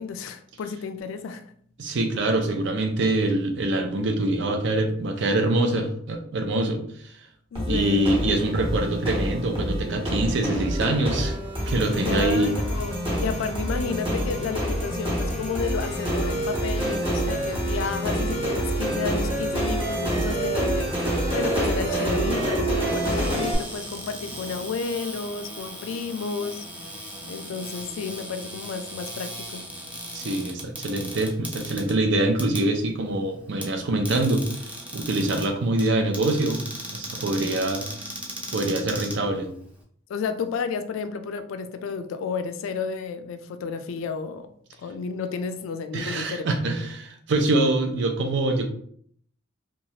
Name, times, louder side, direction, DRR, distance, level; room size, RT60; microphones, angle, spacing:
voice 1, 0.0-1.5 7.5-8.2 12.0-13.0 13.2-26.7 27.3-29.6 40.1-44.5 44.8-46.4, left 5 dB, 85° left, 9 dB, 0.3 m, -32 dB
voice 2, 1.8-7.1 7.7-11.4 11.7-12.5 30.1-36.6 36.9-37.9 38.5-39.5 45.9-48.7, right 2 dB, 65° right, 5 dB, 0.5 m, -24 dB
sound 1, 7.5-23.5, right 1 dB, 25° right, 0.9 m, -27 dB
Cupboard open or close, 22.8-39.8, right 1 dB, 5° right, 0.5 m, -38 dB
3.0 x 2.3 x 2.8 m, 0.62 s
head